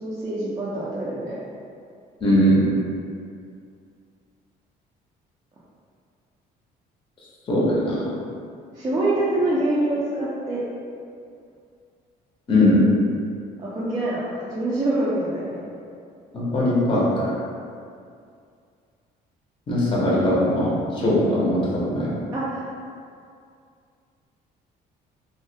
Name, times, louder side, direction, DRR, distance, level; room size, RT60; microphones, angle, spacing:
voice 1, 0.0-1.4 8.7-10.6 13.6-15.6 22.3-22.7, right 1 dB, 25° right, -8 dB, 0.4 m, -25 dB
voice 2, 2.2-2.7 7.5-8.1 12.5-12.8 16.3-17.3 19.7-22.1, left 1 dB, 30° left, -6 dB, 0.6 m, -20 dB
2.2 x 2.1 x 2.6 m, 2.3 s
cardioid pair, 110°, 17 cm